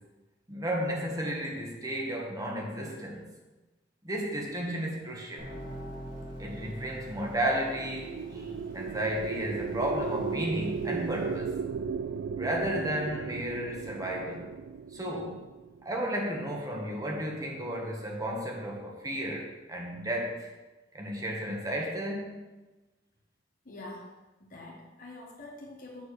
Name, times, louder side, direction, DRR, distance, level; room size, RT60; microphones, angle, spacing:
voice 1, 0.5-3.2 4.0-5.5 6.4-11.6 12.4-14.5 14.9-15.4 15.8-20.5 20.9-22.4, equal, 20° right, -1 dB, 1.5 m, -33 dB
sound 1, 5.4-11.4, right 1 dB, 50° right, 2.1 m, -45 dB
sound 2, 7.6-16.1, right 6 dB, 85° right, 0.3 m, -36 dB
voice 2, 23.6-24.1 24.4-26.1, left 2 dB, 50° left, -3 dB, 1.5 m, -45 dB
7.3 x 4.6 x 6.4 m, 1.2 s
head